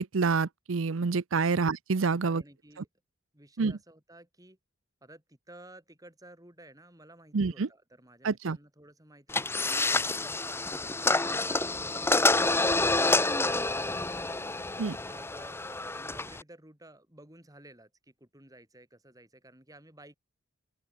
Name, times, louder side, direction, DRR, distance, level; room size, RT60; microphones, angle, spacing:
voice 1, 0.0-2.4 3.6-3.7 7.3-7.7 8.2-8.6 14.8-15.0, right 4 dB, 65° right, 0.6 m, -27 dB
voice 2, 2.2-2.9 3.3-4.6 5.0-14.3 15.0-20.2, right 1 dB, 15° right, 7.7 m, -54 dB
sound 1, 9.3-16.4, left 2 dB, 10° left, 0.9 m, -28 dB
open air
head